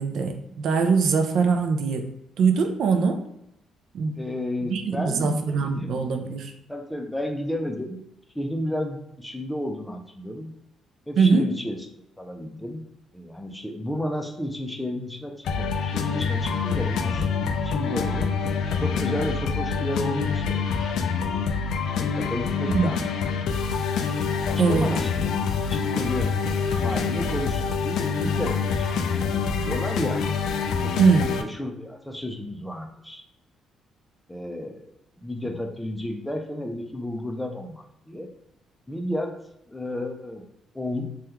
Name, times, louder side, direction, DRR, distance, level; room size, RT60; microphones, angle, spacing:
voice 1, 0.0-2.1 2.4-3.2 3.9-4.1 4.7-6.5 11.2-11.5 22.7-22.9 24.6-24.9 31.0-31.3, right 5 dB, 65° right, 5 dB, 0.4 m, -22 dB
voice 2, 4.2-6.1 6.7-8.0 8.3-10.5 11.1-11.9 12.2-12.8 13.1-18.3 18.7-21.2 22.0-23.4 24.5-25.4 25.7-26.3 26.8-28.7 29.1-30.2 30.8-30.9 31.2-33.2 34.3-34.9 35.2-38.3 38.9-39.4 39.7-40.5 40.7-41.1, left 1 dB, 5° left, 3 dB, 0.4 m, -32 dB
sound 1, 15.4-31.4, left 5 dB, 75° left, 0.3 m, -26 dB
3.4 x 2.2 x 2.9 m, 0.80 s
cardioid pair, 125°, 0 cm